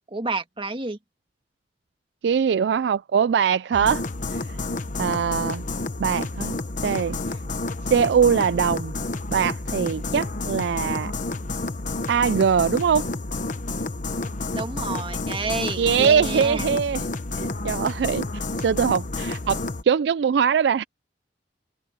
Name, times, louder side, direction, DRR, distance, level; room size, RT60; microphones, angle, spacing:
voice 1, 0.1-1.0 14.5-16.7, right 3 dB, 30° right, 1.7 m, -29 dB
voice 2, 2.2-4.0 4.3-4.4 5.0-5.6 6.0-6.5 6.8-7.2 7.9-8.9 9.3-11.1 12.1-13.1 15.8-17.0 17.4-18.3 18.6-20.8, right 7 dB, 70° right, 0.3 m, -22 dB
sound 1, 3.7-19.8, left 2 dB, 45° left, 1.0 m, -30 dB
head